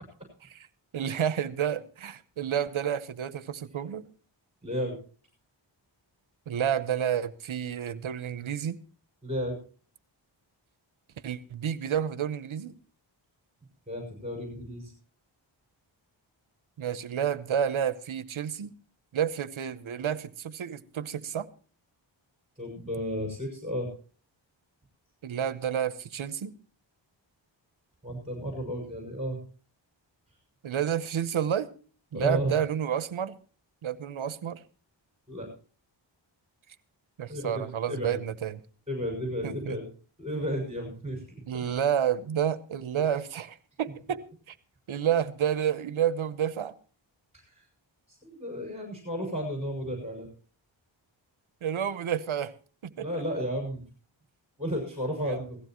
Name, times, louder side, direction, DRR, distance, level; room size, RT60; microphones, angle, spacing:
voice 1, 0.9-4.0 6.5-8.8 11.2-12.7 16.8-18.7 19.1-21.5 25.2-26.5 30.6-31.7 32.1-33.3 33.8-34.6 37.2-38.6 39.4-39.8 41.5-44.5 44.9-46.7 51.6-52.5 52.8-53.1 55.2-55.4, right 9 dB, 90° right, 0.9 m, -30 dB
voice 2, 4.6-5.0 9.2-9.6 13.9-14.9 22.6-23.9 28.0-29.4 32.1-32.5 35.3-35.5 37.3-38.2 38.9-39.8 40.2-41.2 41.5-41.6 48.2-50.3 53.0-53.8 54.6-55.6, equal, 15° right, 6.3 m, -33 dB
17.5 x 15.0 x 3.0 m
wide cardioid pair, 75°, 47 cm